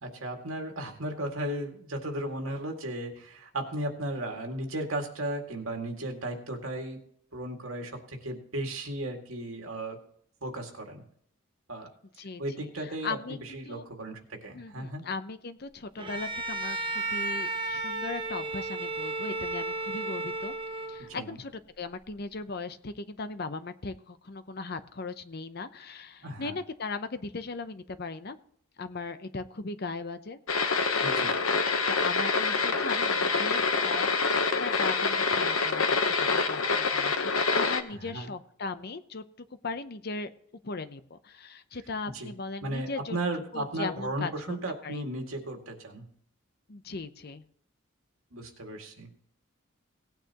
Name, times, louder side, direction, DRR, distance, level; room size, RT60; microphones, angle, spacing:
voice 1, 0.0-7.0 7.3-10.0 10.4-11.0 11.7-11.9 12.4-15.0 21.1-21.4 26.2-26.6 31.0-31.3 37.9-38.3 42.1-42.3 42.6-46.1 48.3-49.1, right 1 dB, 80° right, 3 dB, 2.1 m, -35 dB
voice 2, 12.2-13.8 14.5-20.5 20.9-21.5 21.8-28.4 28.8-30.4 31.9-39.2 39.6-40.3 40.6-43.2 43.5-44.6 44.8-45.0 46.7-47.4, left 3 dB, 50° left, 11 dB, 0.7 m, -38 dB
Bowed string instrument, 16.0-21.2, right 2 dB, 25° right, 0.8 m, -33 dB
sound 1, 30.5-37.8, left 4 dB, 90° left, 1.0 m, -26 dB
18.0 x 9.1 x 3.0 m, 0.64 s
head